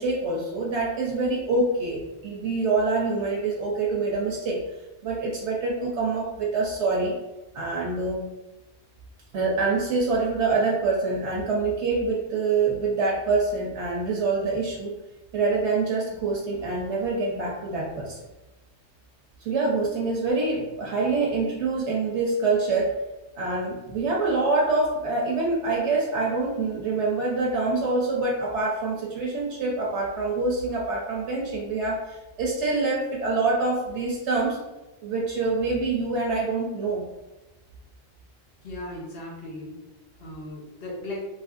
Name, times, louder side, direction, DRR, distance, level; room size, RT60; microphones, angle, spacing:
voice 1, 0.0-4.6 5.0-7.1 7.5-8.3 9.3-14.9 15.3-18.2 19.4-22.9 23.4-34.6 35.0-37.0, right 3 dB, 65° right, -3 dB, 0.8 m, -25 dB
voice 2, 38.6-39.8 40.2-41.2, left 1 dB, 60° left, -3 dB, 0.8 m, -37 dB
3.0 x 2.5 x 2.4 m, 1.0 s
omnidirectional pair, 1.3 m